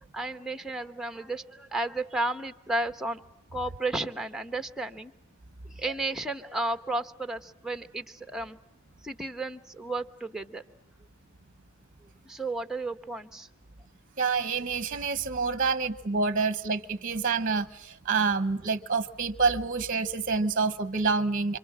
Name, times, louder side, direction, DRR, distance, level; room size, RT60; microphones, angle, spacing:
voice 1, 0.1-3.2 3.5-5.1 5.6-8.6 9.0-10.6 12.2-13.5, right 2 dB, ahead, 8 dB, 1.1 m, -33 dB
voice 2, 14.2-21.6, right 4 dB, 40° right, 14 dB, 0.9 m, -27 dB
28.0 x 25.5 x 7.4 m, 0.85 s
head